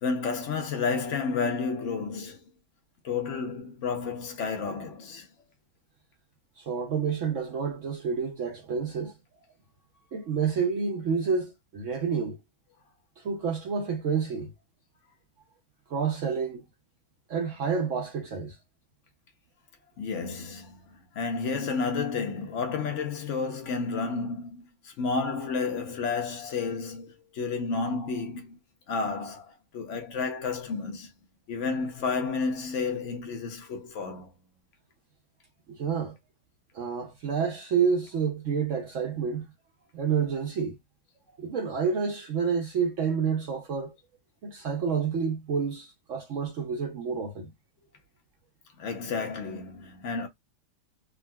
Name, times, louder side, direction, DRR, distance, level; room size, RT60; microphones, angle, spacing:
voice 1, 0.0-2.4 3.0-5.3 20.0-28.6 28.9-31.1 31.5-34.3 48.8-50.3, left 4 dB, 55° left, 1.0 m, -31 dB
voice 2, 6.6-9.1 10.1-12.4 13.2-14.5 15.9-16.6 17.3-18.6 35.7-36.2 36.7-39.4 39.9-40.8 41.4-43.9 44.4-47.5, right 6 dB, 60° right, 0.8 m, -29 dB
3.6 x 2.2 x 2.3 m
omnidirectional pair, 1.8 m